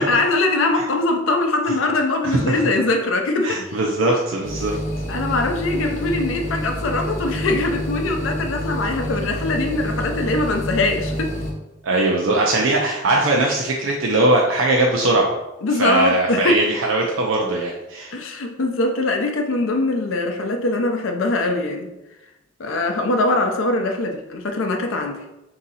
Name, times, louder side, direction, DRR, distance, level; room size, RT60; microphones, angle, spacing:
voice 1, 0.0-3.6 5.1-11.3 15.6-16.6 18.1-21.9 22.6-25.2, left 2 dB, 85° left, 4 dB, 0.5 m, -22 dB
voice 2, 2.2-2.6 3.4-4.8 11.8-15.3 15.8-18.1, right 2 dB, 85° right, -1 dB, 0.5 m, -20 dB
sound 1, 4.4-11.5, equal, 40° left, 0.8 m, -28 dB
3.7 x 2.8 x 4.1 m, 0.97 s
head